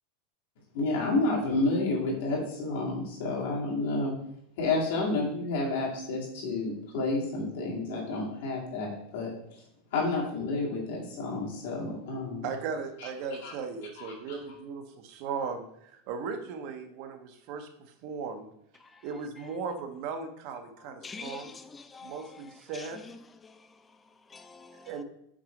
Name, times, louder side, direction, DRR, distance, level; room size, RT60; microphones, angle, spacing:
voice 1, 0.7-4.1 4.6-9.3 9.9-12.5 13.4-13.5 14.0-14.1, left 2 dB, 60° left, 2.2 m, -30 dB
voice 2, 12.4-18.5 19.0-21.5 22.0-23.0 24.8-25.0, right 5 dB, 40° right, 0.7 m, -37 dB
voice 3, 20.8-25.0, left 4 dB, 10° left, 0.3 m, -47 dB
6.1 x 3.9 x 5.1 m
supercardioid pair, 175°, 0 cm